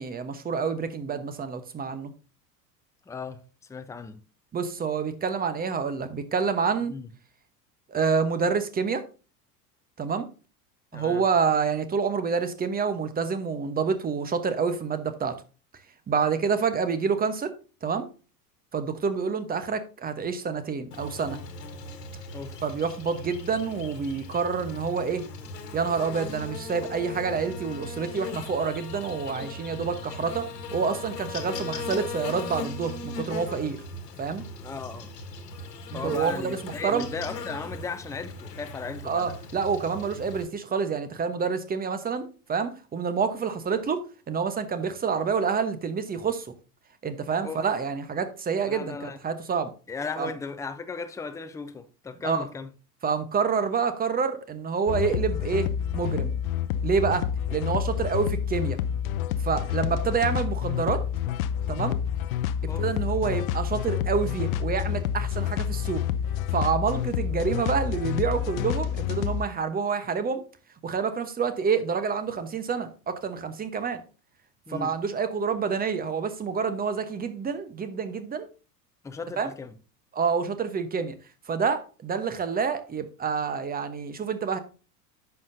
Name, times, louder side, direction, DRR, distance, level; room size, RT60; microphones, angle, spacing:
voice 1, 0.0-2.1 4.5-6.9 7.9-9.0 10.0-10.3 10.9-15.4 16.1-17.5 17.8-18.1 18.7-21.4 22.6-25.3 25.7-33.8 34.2-34.4 35.9-37.1 39.0-46.5 47.0-49.7 50.2-50.3 52.2-52.5 53.0-56.3 56.8-58.8 59.4-61.0 61.7-62.0 62.6-66.1 66.5-70.4 70.8-74.0 74.7-78.5 79.4-79.5 80.1-81.1 81.5-84.6, right 5 dB, 20° right, 1.1 m, -28 dB
voice 2, 3.1-3.4 3.7-4.2 6.9-7.1 10.9-11.2 22.3-22.6 34.6-35.1 35.9-39.4 47.4-47.6 48.6-49.2 49.9-52.7 62.7-62.9 74.7-74.9 79.0-79.7, left 4 dB, 5° left, 0.6 m, -36 dB
Buzz, 20.9-40.4, left 3 dB, 75° left, 1.5 m, -38 dB
sound 1, 54.9-69.5, left 9 dB, 55° left, 0.7 m, -28 dB
10.5 x 6.8 x 2.7 m
figure-of-eight pair, 80°, 49 cm